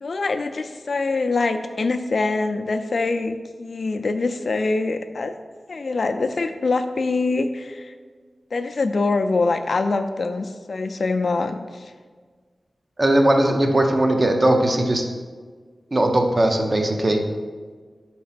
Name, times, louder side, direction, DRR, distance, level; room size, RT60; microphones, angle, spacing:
voice 1, 0.0-5.3 5.7-7.9 8.5-11.9, left 3 dB, 65° left, 8 dB, 0.4 m, -24 dB
voice 2, 13.0-15.0 15.9-17.2, right 1 dB, 35° right, 4 dB, 0.7 m, -19 dB
5.0 x 4.3 x 5.7 m, 1.5 s
wide cardioid pair, 100°, 0 cm